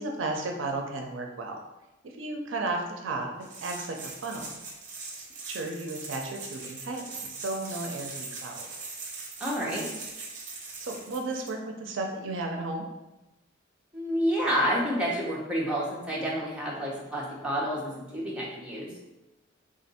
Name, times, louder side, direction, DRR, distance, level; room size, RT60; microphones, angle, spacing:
voice 1, 0.0-1.6 2.0-4.5 5.2-8.7 10.8-12.9, right 2 dB, 70° right, 3 dB, 0.5 m, -34 dB
sound 1, 3.4-11.5, right 3 dB, 40° right, 0.8 m, -41 dB
voice 2, 9.4-9.9 13.9-18.9, equal, 5° right, -6 dB, 0.8 m, -29 dB
3.7 x 2.5 x 4.1 m, 0.99 s
head